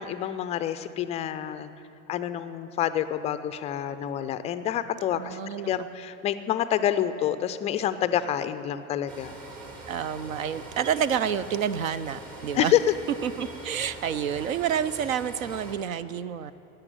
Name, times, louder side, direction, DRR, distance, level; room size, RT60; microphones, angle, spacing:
voice 1, 0.0-1.7 2.1-9.3 12.5-12.8, left 11 dB, 15° left, 12 dB, 0.3 m, -28 dB
voice 2, 5.2-5.7 9.9-12.7 13.2-16.5, right 8 dB, 70° right, 17 dB, 0.7 m, -29 dB
sound 1, 9.1-15.7, right 2 dB, 40° right, 3.5 m, -43 dB
15.5 x 10.0 x 9.1 m, 3.0 s
figure-of-eight pair, 75°, 43 cm